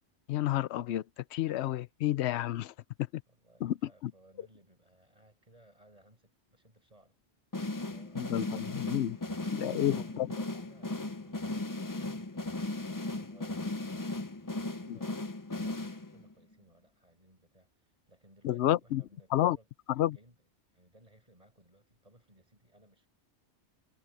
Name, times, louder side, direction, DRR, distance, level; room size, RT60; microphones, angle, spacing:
voice 1, 0.3-1.0 1.3-2.7 3.6-3.7 4.0-4.1 8.2-9.2 9.5-10.3 14.9-15.0 18.4-19.0 19.3-19.6 20.0-20.2, left 13 dB, 75° left, 0.8 m, -30 dB
voice 2, 3.3-7.2 7.8-8.8 9.0-12.6 12.9-23.1, right 1 dB, 30° right, 7.5 m, -63 dB
sound 1, 7.5-16.3, left 2 dB, 20° left, 0.6 m, -37 dB
omnidirectional pair, 1.2 m